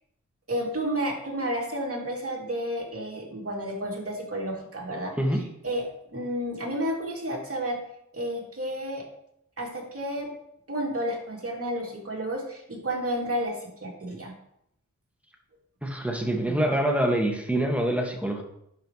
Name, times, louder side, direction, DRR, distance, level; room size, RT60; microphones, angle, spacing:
voice 1, 0.5-5.8 6.1-7.8 8.1-9.0 9.6-10.3 10.7-14.3, equal, 50° right, -2 dB, 2.6 m, -31 dB
voice 2, 15.8-18.4, right 1 dB, 5° right, 1 dB, 1.8 m, -25 dB
11.0 x 5.8 x 3.2 m, 0.75 s
cardioid pair, 55°, 30 cm